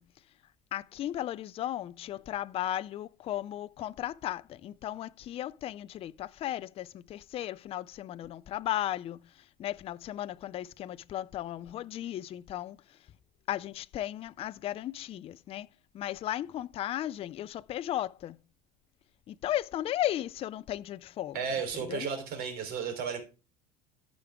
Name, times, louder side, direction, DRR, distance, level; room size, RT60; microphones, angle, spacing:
voice 1, 0.7-9.2 9.6-12.8 13.5-15.7 15.9-18.3 19.3-21.3 21.9-22.0, left 12 dB, 30° left, 0.3 m, -35 dB
voice 2, 21.3-23.2, right 6 dB, 50° right, 3.6 m, -33 dB
14.0 x 5.1 x 3.5 m
supercardioid pair, 120°, 20 cm